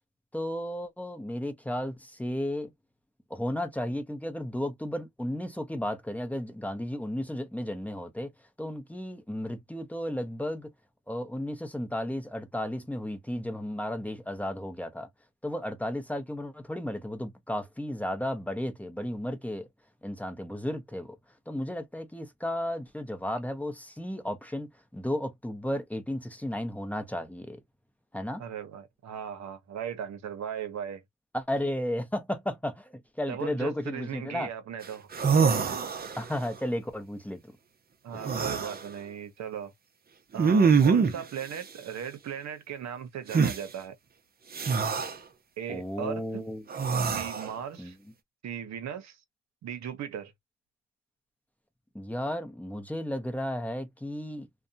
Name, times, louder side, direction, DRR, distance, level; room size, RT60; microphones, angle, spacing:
voice 1, 0.3-2.7 3.3-8.3 8.6-10.7 11.1-15.1 15.4-19.7 20.0-21.2 21.5-27.6 28.1-28.4 31.3-34.5 36.2-37.4 38.1-38.4 45.7-46.6 47.8-47.9 51.9-54.5, left 1 dB, 5° left, 0.7 m, -34 dB
voice 2, 28.4-31.0 33.3-35.1 38.0-39.7 40.3-43.9 45.6-46.4 47.0-48.0 48.4-49.2 49.6-50.3, right 8 dB, 65° right, 0.8 m, -37 dB
sound 1, 34.8-34.9 35.1-36.4 38.2-38.8 40.4-41.2 43.3-43.6 44.5-45.1 46.7-47.5, right 5 dB, 30° right, 0.6 m, -24 dB
2.6 x 2.2 x 2.6 m
cardioid pair, 90°, 30 cm